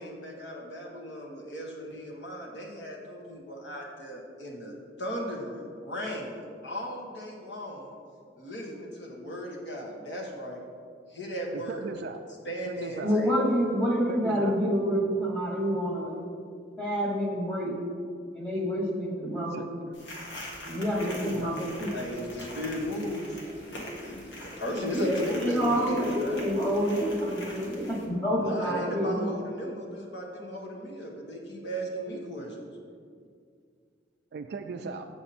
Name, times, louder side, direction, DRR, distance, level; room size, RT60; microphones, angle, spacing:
voice 1, 0.0-4.7 5.0-7.9 8.4-10.6 11.1-11.9 12.4-13.3 21.9-26.4 28.4-32.6, equal, 70° left, -1 dB, 1.5 m, -36 dB
voice 2, 11.5-12.2 12.7-13.2 14.1-14.6 19.5-19.7 21.0-21.5 34.3-35.1, right 4 dB, 65° right, 5 dB, 0.3 m, -38 dB
voice 3, 13.0-16.2 16.8-17.7 18.3-19.5 20.6-21.9 24.9-29.3, equal, 10° left, -3 dB, 1.2 m, -28 dB
sound 1, 19.9-28.1, left 1 dB, 85° left, 1.6 m, -43 dB
7.0 x 6.9 x 4.2 m, 2.2 s
head